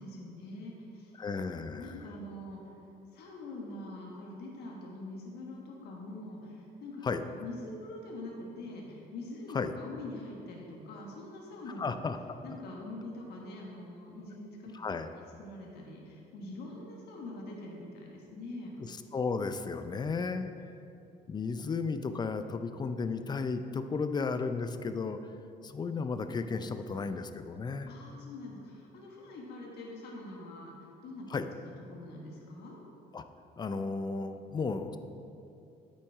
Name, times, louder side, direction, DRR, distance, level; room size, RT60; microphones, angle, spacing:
voice 1, 0.0-1.1 1.8-11.9 12.4-14.8 15.1-18.8 27.9-30.7 31.0-31.3 31.5-32.8, left 2 dB, 75° left, -2 dB, 1.5 m, -44 dB
voice 2, 1.2-1.9 7.0-7.2 9.5-9.7 11.8-12.2 14.7-15.1 18.9-20.5 21.3-25.2 25.6-27.9 31.3-31.5 33.1-33.2 33.6-35.0, left 4 dB, 25° left, 9 dB, 0.5 m, -34 dB
8.4 x 6.2 x 4.7 m, 2.7 s
cardioid pair, 110°, 17 cm